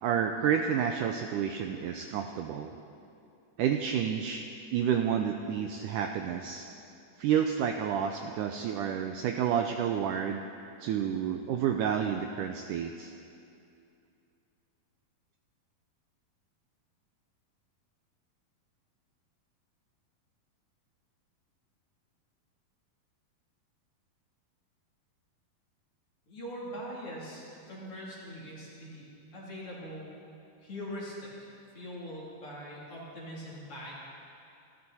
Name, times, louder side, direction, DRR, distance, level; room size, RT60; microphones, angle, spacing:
voice 1, 0.0-2.7 3.6-4.5 4.7-6.7 7.2-10.4 10.8-13.1, right 8 dB, 80° right, 5 dB, 1.9 m, -30 dB
voice 2, 26.3-30.1 30.6-33.9, equal, 40° left, -6 dB, 3.9 m, -42 dB
27.0 x 12.5 x 4.2 m, 2.6 s
omnidirectional pair, 4.2 m